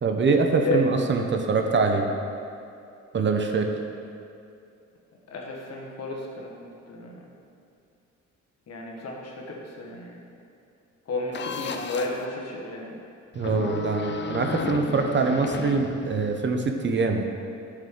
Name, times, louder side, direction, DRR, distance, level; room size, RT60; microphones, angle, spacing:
voice 1, 0.0-2.1 3.1-3.7 13.3-17.2, right 4 dB, 40° right, 4 dB, 0.8 m, -24 dB
voice 2, 5.3-7.2 8.7-10.2 11.1-12.9, left 2 dB, 55° left, -2 dB, 1.5 m, -32 dB
sound 1, 11.3-12.2 13.3-16.4, left 5 dB, 40° left, 0.5 m, -34 dB
9.1 x 6.5 x 3.8 m, 2.6 s
cardioid pair, 90°, 30 cm